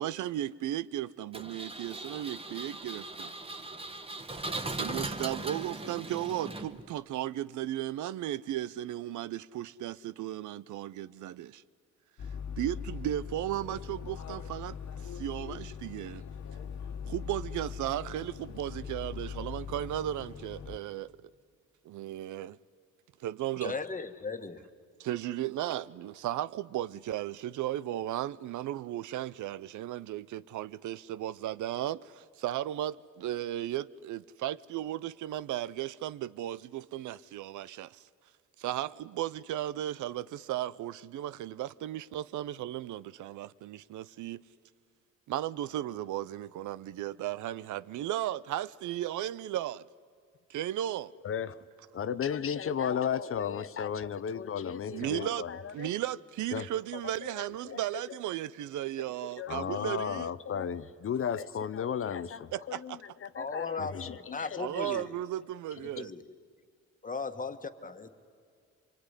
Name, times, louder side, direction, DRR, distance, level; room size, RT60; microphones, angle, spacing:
voice 1, 0.0-3.3 4.8-11.6 12.6-16.2 17.1-21.3 21.8-22.6 23.2-23.8 25.0-38.1 38.6-44.4 45.3-49.8 50.5-51.1 54.9-55.4 55.7-60.3 62.5-63.0 64.6-66.1, right 13 dB, 75° right, 0.6 m, -35 dB
Engine, 1.3-7.0, right 2 dB, 20° right, 1.6 m, -39 dB
sound 1, 12.2-20.8, left 7 dB, 70° left, 1.7 m, -41 dB
voice 2, 23.6-24.6 63.3-65.1 66.0-66.2 67.0-68.1, left 4 dB, 25° left, 1.5 m, -37 dB
voice 3, 51.2-51.6 51.9-55.9 56.5-56.7 57.2-57.8 58.1-58.2 59.4-64.7 65.8-65.9, left 8 dB, 45° left, 0.8 m, -34 dB
25.0 x 23.5 x 9.9 m
cardioid pair, 90°, 30 cm